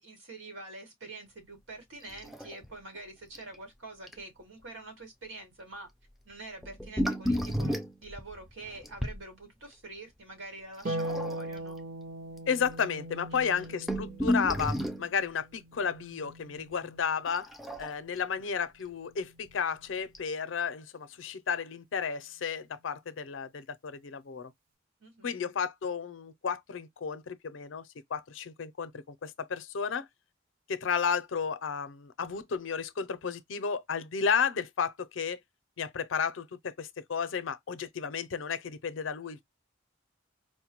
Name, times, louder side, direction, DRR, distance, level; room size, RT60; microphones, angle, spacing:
voice 1, 0.0-5.9 6.3-11.8 13.3-13.7 25.0-25.5, right 2 dB, 90° right, 1.9 m, -46 dB
sound 1, 2.1-2.7 3.0-3.1 3.3-3.6 4.1-4.2 6.6-9.2 10.9-11.6 12.4-12.5 12.7-12.8 13.4-15.1 17.3-18.2 19.5-19.6 20.1-20.2, equal, ahead, 0.4 m, -32 dB
Harp, 10.8-17.4 19.0-20.0, right 1 dB, 50° right, 0.9 m, -41 dB
voice 2, 12.5-17.5 17.8-24.5 25.2-30.1 30.7-35.4 35.8-39.4, left 6 dB, 80° left, 0.5 m, -33 dB
4.4 x 2.2 x 2.9 m
head